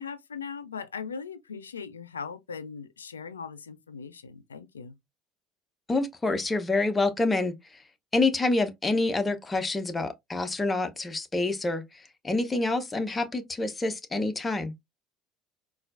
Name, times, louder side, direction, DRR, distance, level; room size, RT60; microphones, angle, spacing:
voice 1, 0.0-5.0, left 6 dB, 85° left, 0.3 m, -39 dB
voice 2, 5.9-7.5 8.1-14.7, left 2 dB, 20° left, 0.8 m, -27 dB
4.1 x 2.3 x 2.4 m
figure-of-eight pair, 60°, 0 cm